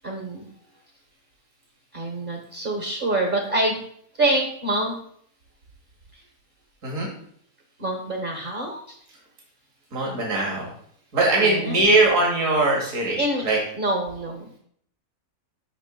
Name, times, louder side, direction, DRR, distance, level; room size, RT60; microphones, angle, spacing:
voice 1, 0.0-0.5 1.9-3.8 4.2-5.0 7.8-9.0 11.4-11.8 13.2-14.4, right 1 dB, 40° right, 2 dB, 1.1 m, -26 dB
voice 2, 9.9-10.7 11.1-13.2 13.4-13.6, right 2 dB, 65° right, -2 dB, 2.2 m, -21 dB
6.4 x 6.2 x 3.7 m, 0.64 s
omnidirectional pair, 1.5 m